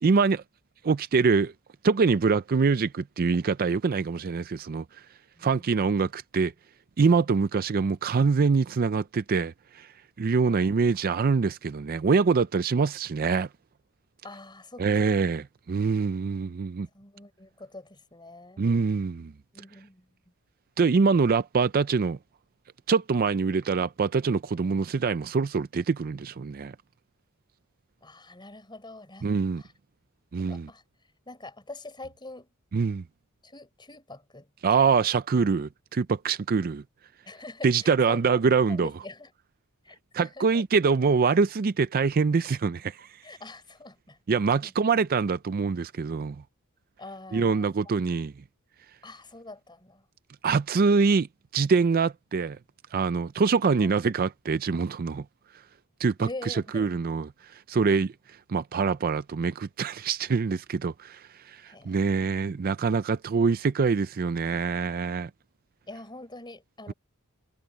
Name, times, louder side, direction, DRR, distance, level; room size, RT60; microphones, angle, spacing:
voice 1, 0.0-0.4 0.8-1.5 1.8-4.8 5.4-6.5 7.0-9.9 10.2-13.5 14.8-16.9 18.6-19.3 20.8-22.2 22.9-26.7 29.2-29.6 30.3-30.7 32.7-33.0 34.6-36.8 37.6-38.9 40.1-43.1 44.3-46.4 47.3-48.3 50.4-51.3 51.5-52.6 52.9-55.2 56.0-58.1 58.5-65.3, right 5 dB, 40° right, 0.4 m, -24 dB
voice 2, 5.4-5.9 10.4-10.7 14.2-15.1 16.9-18.6 19.5-20.1 28.0-29.3 29.6-29.7 30.5-30.8 31.3-32.5 33.4-34.5 37.2-38.4 38.7-39.3 39.8-40.6 43.2-44.2 44.6-44.7 47.0-47.8 49.0-50.0 53.8-53.9 56.2-56.9 61.7-62.1 65.9-66.9, left 2 dB, 20° left, 5.6 m, -44 dB
head